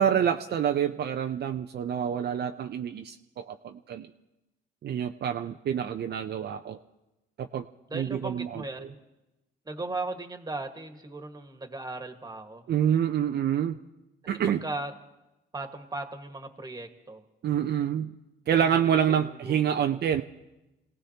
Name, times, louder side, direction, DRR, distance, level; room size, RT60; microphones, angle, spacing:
voice 1, 0.0-4.1 4.8-6.8 7.4-7.6 7.9-8.6 12.7-13.8 14.3-14.6 17.4-18.1 18.5-20.2, right 9 dB, 55° right, 6 dB, 0.6 m, -27 dB
voice 2, 7.9-9.0 9.6-12.6 14.5-15.0 15.5-17.2 18.5-20.0, right 2 dB, 20° right, 6 dB, 1.6 m, -38 dB
28.5 x 17.5 x 2.9 m, 0.99 s
cardioid pair, 90°, 20 cm